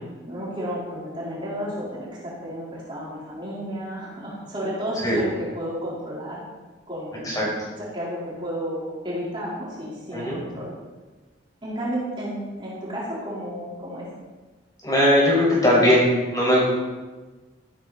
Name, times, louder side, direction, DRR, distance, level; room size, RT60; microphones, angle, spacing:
voice 1, 0.2-6.4 6.9-10.7 11.6-14.1, equal, 25° right, -7 dB, 4.7 m, -32 dB
voice 2, 10.1-10.4 14.8-16.6, left 1 dB, 20° left, -5 dB, 5.9 m, -19 dB
15.0 x 14.0 x 4.5 m, 1.3 s
head